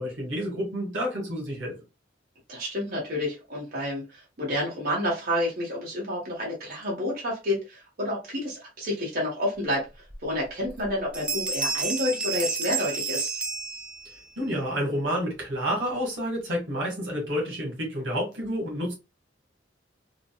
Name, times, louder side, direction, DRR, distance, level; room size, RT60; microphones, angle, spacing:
voice 1, 0.0-1.7 14.4-18.9, equal, 90° right, 1.5 m, -29 dB
voice 2, 2.5-13.4, left 1 dB, 50° right, 1.2 m, -29 dB
sound 1, 10.1-10.2 10.6-10.9 11.1-14.3, right 4 dB, 5° right, 0.3 m, -30 dB
3.8 x 2.1 x 2.2 m
head